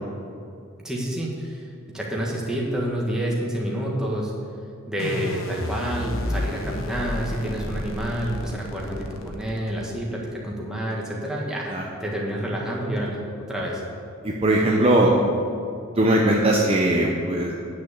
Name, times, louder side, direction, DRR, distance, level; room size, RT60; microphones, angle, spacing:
voice 1, 0.8-1.7 1.9-4.3 4.9-13.2 13.5-13.8, right 1 dB, 5° right, -4 dB, 1.6 m, -28 dB
sound 1, 5.0-10.0, left 1 dB, 65° left, 1.1 m, -31 dB
voice 2, 14.2-15.1 16.0-17.5, right 1 dB, 25° right, -2 dB, 0.8 m, -20 dB
9.3 x 6.4 x 8.3 m, 2.5 s
head